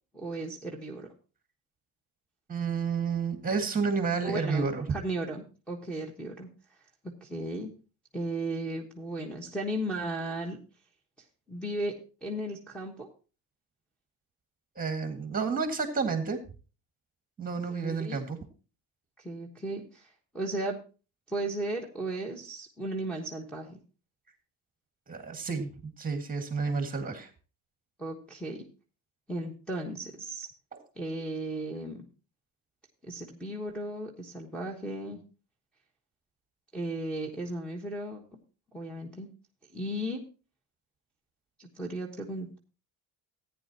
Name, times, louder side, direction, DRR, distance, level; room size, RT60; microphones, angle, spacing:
voice 1, 0.1-1.1 4.2-6.5 7.0-7.7 8.1-10.6 11.5-11.9 12.2-13.1 17.7-18.2 19.2-20.1 20.3-20.8 21.3-23.8 28.0-28.6 29.3-30.5 31.0-32.0 33.1-35.2 36.7-38.2 38.7-39.3 39.7-40.2 41.6-42.6, right 1 dB, 5° left, -4 dB, 1.3 m, -35 dB
voice 2, 2.5-4.8 14.8-16.4 17.4-18.4 25.1-25.7 26.0-27.3, right 5 dB, 20° right, 6 dB, 1.9 m, -30 dB
15.0 x 9.6 x 2.9 m, 0.34 s
cardioid pair, 145°, 40 cm